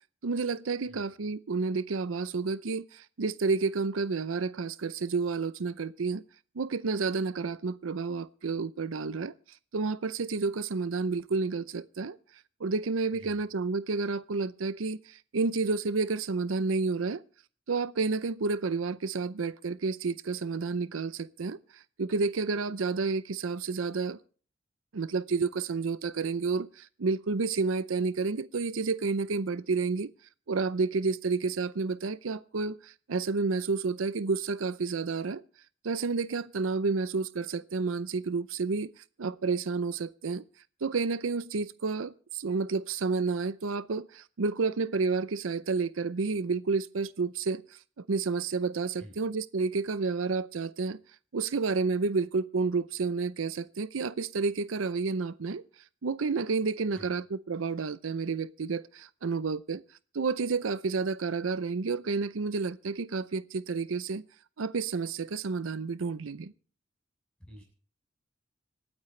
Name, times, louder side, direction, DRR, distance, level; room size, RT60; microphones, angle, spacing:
voice 1, 0.2-6.2 6.6-12.2 12.6-17.2 17.7-24.2 24.9-30.1 30.5-35.4 35.8-40.4 40.8-51.0 51.3-55.6 56.0-59.8 60.1-64.2 64.6-66.5, right 4 dB, 85° right, 0.6 m, -30 dB
voice 2, 0.9-1.0 13.2-13.4 49.0-49.1 56.9-57.1 67.4-67.6, equal, 5° left, 7.6 m, -49 dB
26.0 x 9.0 x 3.2 m
head